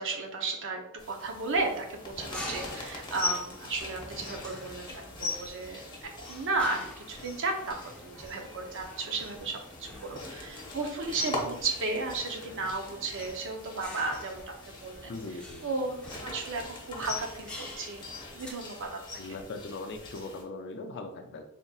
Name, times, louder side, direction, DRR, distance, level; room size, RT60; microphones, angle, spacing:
voice 1, 0.0-7.8 8.0-15.2 15.6-18.1 18.3-19.2, right 3 dB, 60° right, 3 dB, 0.7 m, -34 dB
sound 1, 1.0-20.4, left 2 dB, 20° left, 0.9 m, -41 dB
sound 2, 1.7-18.5, left 1 dB, 5° left, 0.6 m, -47 dB
voice 2, 15.1-15.6 19.2-21.4, left 3 dB, 55° left, 5 dB, 0.5 m, -40 dB
4.1 x 3.6 x 2.3 m, 0.74 s
head